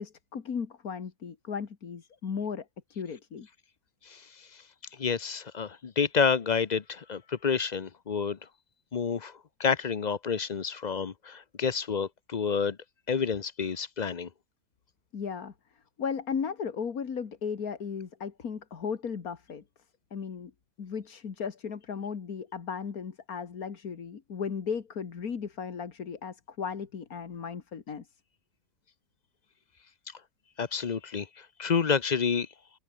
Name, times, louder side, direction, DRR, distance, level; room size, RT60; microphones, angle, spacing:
voice 1, 0.0-2.7 2.9-3.5 15.1-15.5 16.0-19.6 20.1-20.5 20.8-28.1, left 6 dB, 75° left, 2.2 m, -36 dB
voice 2, 4.1-4.6 5.0-8.4 8.9-12.8 13.1-14.3 30.6-32.5, left 6 dB, 40° left, 0.7 m, -29 dB
omnidirectional pair, 1.5 m